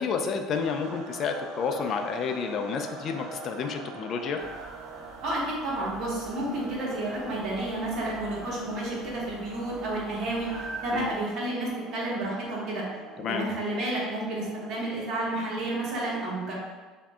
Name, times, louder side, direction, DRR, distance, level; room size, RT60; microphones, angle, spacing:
voice 1, 0.0-4.4 10.9-11.1 13.2-13.4, left 5 dB, 45° left, 5 dB, 0.4 m, -30 dB
sound 1, 0.5-15.3, right 4 dB, 70° right, 0.5 m, -44 dB
sound 2, 4.4-11.2, right 2 dB, 35° right, 1.3 m, -46 dB
voice 2, 5.2-10.5 10.8-12.8 13.3-16.5, right 1 dB, 50° right, -6 dB, 1.5 m, -31 dB
6.9 x 2.7 x 2.4 m, 1.3 s
cardioid pair, 135°, 0 cm